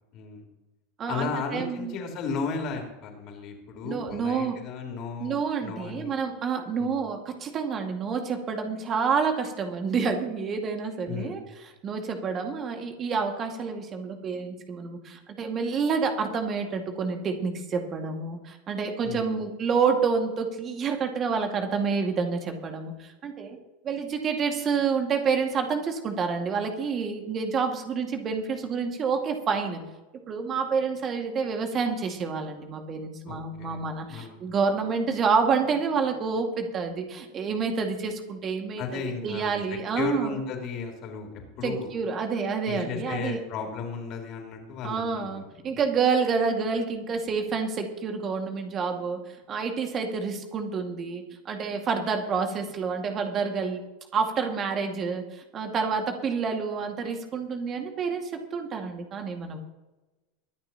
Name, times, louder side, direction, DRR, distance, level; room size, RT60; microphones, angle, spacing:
voice 1, 0.1-0.4 1.0-6.1 6.8-6.9 11.1-11.4 19.0-19.3 33.3-33.8 34.1-34.4 38.8-41.9 42.7-45.7, left 5 dB, 45° left, 3 dB, 3.5 m, -35 dB
voice 2, 1.0-2.0 3.8-4.6 5.2-11.4 11.8-23.6 23.8-29.9 30.3-40.4 41.6-43.4 44.8-49.2 49.5-53.9 54.1-59.6, right 5 dB, 35° right, 4 dB, 2.0 m, -28 dB
23.5 x 10.5 x 3.0 m, 1.1 s
figure-of-eight pair, 80°, 0 cm